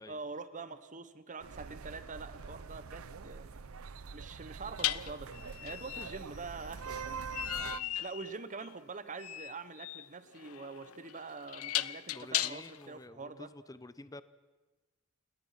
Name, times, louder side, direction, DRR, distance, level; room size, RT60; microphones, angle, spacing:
voice 1, 0.1-3.6 4.1-7.2 7.9-13.5, right 4 dB, 35° right, 12 dB, 1.1 m, -45 dB
sound 1, 1.4-7.8, right 5 dB, 85° right, 0.6 m, -44 dB
sound 2, 2.4-2.5 4.8-12.9, left 14 dB, 90° left, 0.6 m, -38 dB
voice 2, 7.6-8.0 12.1-14.2, left 2 dB, 15° left, 15 dB, 0.6 m, -50 dB
29.5 x 18.0 x 5.9 m, 1.2 s
head